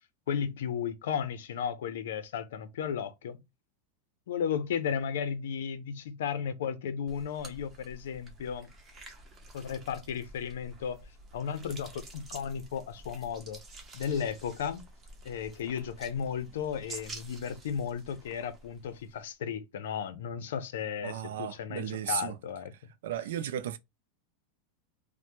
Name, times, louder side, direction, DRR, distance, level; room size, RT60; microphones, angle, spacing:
voice 1, 0.3-3.4 4.3-8.7 9.5-11.0 11.3-13.6 13.9-14.8 15.2-22.7, left 7 dB, 85° left, 0.6 m, -34 dB
sound 1, 7.1-19.3, right 2 dB, 20° right, 0.9 m, -49 dB
voice 2, 21.0-22.4 23.0-23.8, right 10 dB, 80° right, 0.4 m, -34 dB
3.2 x 2.1 x 3.0 m
supercardioid pair, 140°, 0 cm